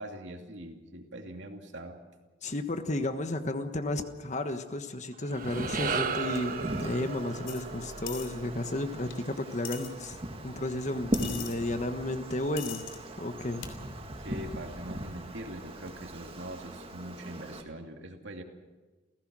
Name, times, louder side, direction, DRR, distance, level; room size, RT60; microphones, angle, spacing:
voice 1, 0.0-2.0 14.2-18.4, right 1 dB, 65° right, 3 dB, 2.7 m, -42 dB
voice 2, 2.4-10.2 10.4-12.9 13.2-13.6, left 1 dB, 35° left, 8 dB, 1.3 m, -33 dB
sound 1, 5.1-9.6, right 5 dB, 45° right, 1.3 m, -36 dB
Wind, 5.3-17.6, right 1 dB, 30° right, 2.1 m, -40 dB
sound 2, 7.5-7.6 8.1-8.3 9.1-9.2 9.6-9.9 11.1-11.6 12.6-13.0 13.6-13.7, left 10 dB, 80° left, 3.2 m, -40 dB
29.0 x 16.5 x 6.3 m, 1.3 s
head